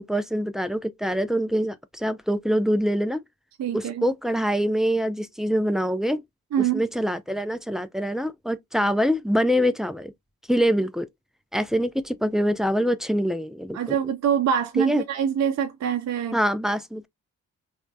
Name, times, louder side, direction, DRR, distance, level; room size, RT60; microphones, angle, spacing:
voice 1, 0.0-3.2 3.7-6.2 6.6-10.1 10.5-11.1 11.5-14.0 14.8-15.0 16.3-17.1, equal, ahead, 0.4 m, -24 dB
voice 2, 3.6-4.1 6.5-6.8 13.7-16.4, right 8 dB, 45° right, 0.6 m, -24 dB
3.2 x 2.1 x 2.5 m
hypercardioid pair, 40°, 38 cm